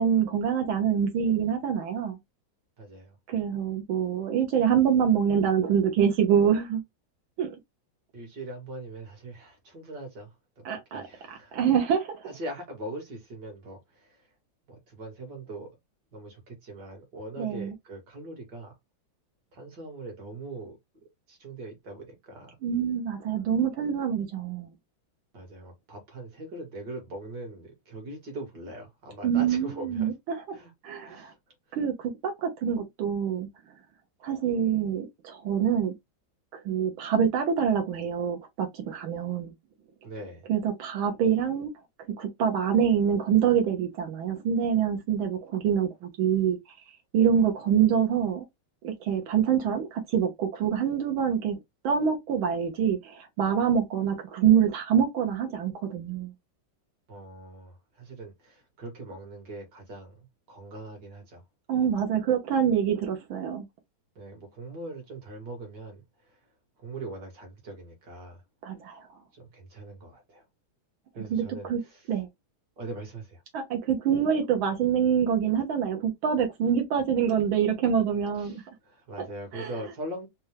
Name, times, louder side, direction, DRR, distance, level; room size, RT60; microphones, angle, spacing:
voice 1, 0.0-2.2 3.3-6.8 7.4-7.6 10.6-11.0 11.3-12.2 17.4-17.7 22.6-24.7 29.2-30.4 30.8-31.3 31.7-33.5 34.2-35.9 36.6-39.5 40.5-41.7 42.2-46.6 47.1-48.4 48.8-56.3 61.7-63.6 68.6-69.1 71.3-71.8 72.1-72.3 73.5-78.6 79.2-79.3 79.5-79.7, right 8 dB, 80° right, 1.6 m, -25 dB
voice 2, 2.8-3.2 8.1-10.6 10.9-11.6 12.2-14.3 14.7-15.7 16.1-18.8 19.5-20.8 21.3-22.6 25.3-30.1 30.5-30.7 31.0-31.4 31.7-31.8 40.0-40.5 57.1-61.4 64.2-66.4 66.8-68.4 69.3-70.4 71.1-72.1 72.8-73.4 78.4-80.3, right 2 dB, 55° right, 2.1 m, -41 dB
4.3 x 2.3 x 3.3 m
omnidirectional pair, 2.2 m